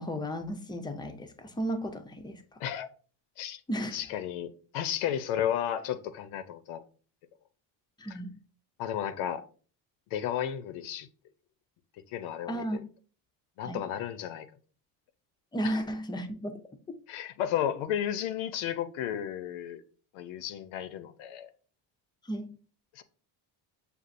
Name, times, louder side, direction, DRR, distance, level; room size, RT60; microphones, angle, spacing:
voice 1, 0.0-2.6 3.7-4.1 8.0-8.4 12.5-12.8 13.6-13.8 15.5-16.6 16.9-17.0 22.2-22.5, equal, 10° left, 0.3 m, -34 dB
voice 2, 3.9-6.8 8.8-9.4 10.1-11.1 12.1-12.6 13.6-14.5 15.6-15.8 17.1-19.8 20.1-21.5 22.9-23.0, left 10 dB, 85° left, 0.6 m, -33 dB
6.8 x 2.3 x 2.5 m
cardioid pair, 105°, 48 cm